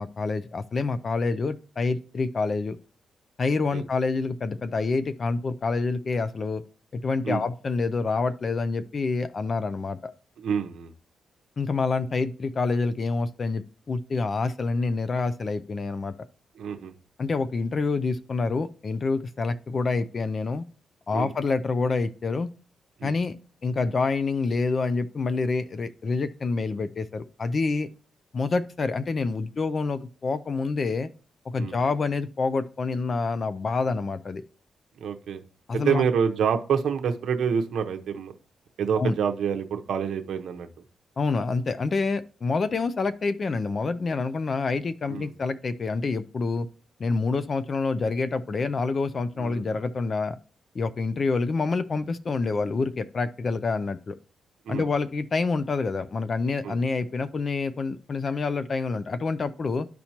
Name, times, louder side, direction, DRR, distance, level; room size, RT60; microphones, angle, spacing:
voice 1, 0.0-2.8 3.4-6.6 6.9-10.1 11.6-16.1 17.2-20.6 21.1-22.5 23.0-23.4 23.6-27.9 28.3-31.1 31.5-34.4 35.7-36.0 39.0-39.1 41.2-46.7 47.0-50.4 50.7-54.2 54.7-59.9, left 4 dB, 40° left, 12 dB, 0.4 m, -27 dB
voice 2, 10.4-10.9 16.6-16.9 21.1-21.3 23.0-23.1 31.6-31.8 35.0-35.4 35.7-38.3 38.8-40.7 45.1-45.3 49.4-49.7 54.6-54.9 56.6-56.8, right 7 dB, 80° right, 6 dB, 0.7 m, -27 dB
12.0 x 4.3 x 2.9 m, 0.40 s
cardioid pair, 95°, 0 cm